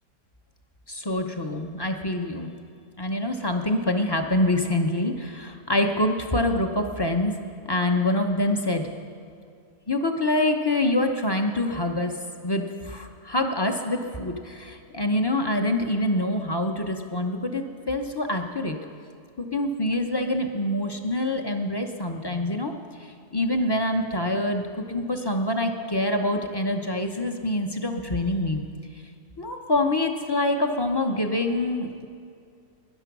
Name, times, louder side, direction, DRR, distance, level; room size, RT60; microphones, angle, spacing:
voice 1, 0.9-2.5 3.0-7.4 7.7-8.9 9.9-12.1 12.4-18.8 19.4-22.7 23.0-28.6 29.4-32.1, left 1 dB, 35° left, 4 dB, 0.3 m, -25 dB
18.5 x 11.0 x 6.1 m, 2.4 s
omnidirectional pair, 1.8 m